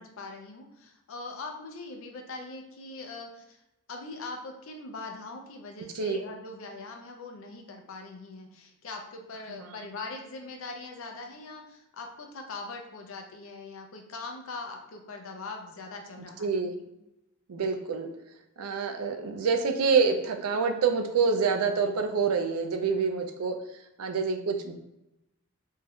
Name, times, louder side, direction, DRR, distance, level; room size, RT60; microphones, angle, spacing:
voice 1, 0.0-3.6 3.9-16.9, left 3 dB, 65° left, 3 dB, 0.4 m, -41 dB
voice 2, 16.4-16.7 17.5-18.1 18.6-23.6 24.0-24.7, right 5 dB, 80° right, 6 dB, 0.4 m, -27 dB
2.6 x 2.3 x 3.4 m, 0.90 s
head